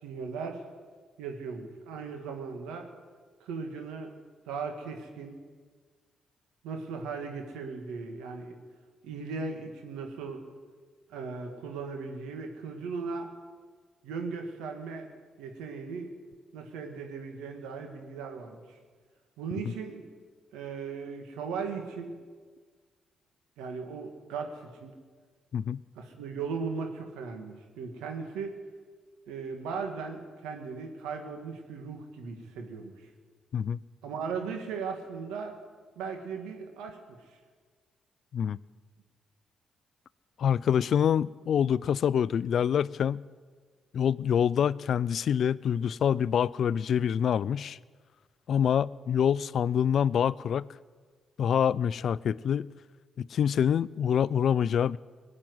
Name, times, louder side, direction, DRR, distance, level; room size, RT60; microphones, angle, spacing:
voice 1, 0.0-0.6 1.2-2.9 3.4-4.1 4.5-5.3 6.6-8.6 9.0-10.4 11.1-13.3 14.0-15.1 15.4-16.1 16.5-18.6 19.4-20.0 20.5-22.1 23.6-24.9 26.0-28.6 29.3-32.9 34.0-35.5 36.0-37.0, right 5 dB, 85° right, 4 dB, 2.0 m, -37 dB
voice 2, 40.4-43.2 43.9-47.8 48.5-50.7 51.4-52.7 53.2-55.0, left 8 dB, 65° left, 21 dB, 0.3 m, -26 dB
19.5 x 7.5 x 9.5 m, 1.5 s
supercardioid pair, 55°, 0 cm